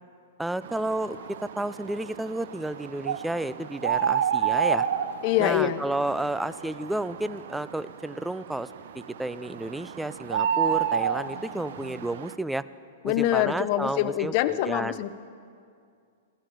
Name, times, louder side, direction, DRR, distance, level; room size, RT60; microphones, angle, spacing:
voice 1, 0.4-4.9 5.4-12.7 13.0-14.3 14.7-15.0, right 1 dB, 5° right, 16 dB, 0.3 m, -31 dB
sound 1, 0.6-12.3, right 8 dB, 65° right, 0.6 m, -31 dB
voice 2, 5.2-5.8 13.0-15.1, left 13 dB, 45° left, 14 dB, 0.6 m, -25 dB
15.5 x 12.5 x 5.1 m, 2.3 s
hypercardioid pair, 110°, 0 cm